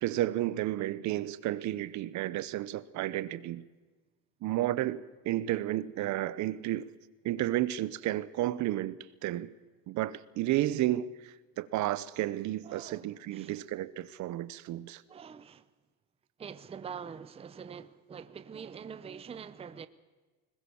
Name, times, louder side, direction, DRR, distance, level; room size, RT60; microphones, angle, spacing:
voice 1, 0.0-3.6 4.4-6.9 7.2-9.5 9.9-15.0, right 14 dB, 55° right, 0.8 m, -32 dB
voice 2, 12.6-13.6 14.7-14.8 15.1-15.7 16.4-19.9, right 7 dB, 15° right, 0.7 m, -45 dB
21.0 x 20.0 x 7.0 m
cardioid pair, 145°, 35 cm